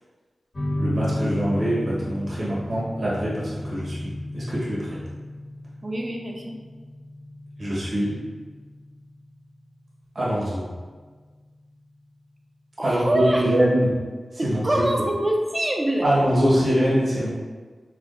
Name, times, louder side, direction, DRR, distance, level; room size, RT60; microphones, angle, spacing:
sound 1, 0.5-11.5, left 1 dB, 55° left, 1.2 m, -34 dB
voice 1, 0.8-5.0 7.6-8.1 10.1-10.7 12.8-13.9 14.3-14.9 16.0-17.3, equal, 50° right, -8 dB, 1.1 m, -23 dB
voice 2, 5.8-6.5 12.8-13.5 14.4-16.1, right 1 dB, 25° right, 0 dB, 0.5 m, -24 dB
5.9 x 2.3 x 2.5 m, 1.4 s
wide cardioid pair, 120°, 0 cm